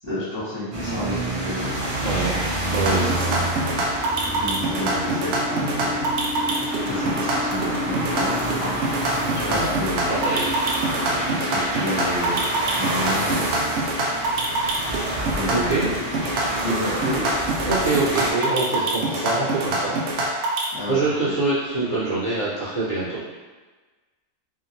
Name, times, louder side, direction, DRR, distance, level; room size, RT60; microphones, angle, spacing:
voice 1, 0.0-1.9 4.3-6.1 6.4-8.8 9.1-10.1 11.0-13.4 15.3-17.5 20.7-21.0 21.3-21.4, left 1 dB, 25° right, -13 dB, 0.8 m, -31 dB
sound 1, 0.7-18.3, right 1 dB, 50° right, 0.4 m, -28 dB
sound 2, 1.5-12.2, left 1 dB, 75° left, 1.4 m, -34 dB
voice 2, 2.0-2.4 2.7-3.5 9.5-9.7 10.1-10.5 15.5-15.9 17.6-19.9 20.9-23.2, right 2 dB, 55° left, -9 dB, 1.0 m, -25 dB
sound 3, 2.7-20.6, right 2 dB, 70° right, 0.8 m, -25 dB
2.7 x 2.7 x 2.6 m, 1.3 s
omnidirectional pair, 1.3 m